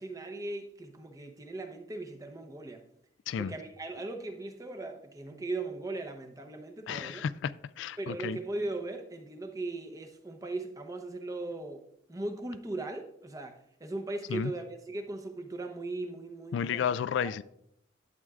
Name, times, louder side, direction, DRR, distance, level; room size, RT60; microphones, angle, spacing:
voice 1, 0.0-2.8 3.4-7.2 8.0-11.8 12.1-16.9 17.2-17.3, right 2 dB, 20° right, 0.8 m, -38 dB
voice 2, 6.9-8.4 14.3-14.5 16.5-17.4, left 7 dB, 70° left, 0.3 m, -32 dB
12.0 x 7.7 x 2.4 m
head